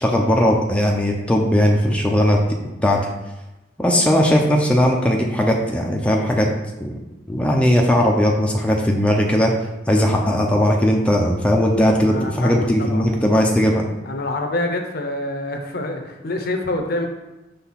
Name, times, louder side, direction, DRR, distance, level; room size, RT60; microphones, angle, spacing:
voice 1, 0.0-2.4 2.8-3.1 3.8-6.5 6.8-6.9 7.3-9.5 9.9-13.8, equal, 5° left, 0 dB, 0.5 m, -18 dB
voice 2, 12.1-13.3 14.0-17.1, left 2 dB, 55° left, 4 dB, 0.8 m, -26 dB
5.8 x 3.4 x 5.7 m, 1.0 s
head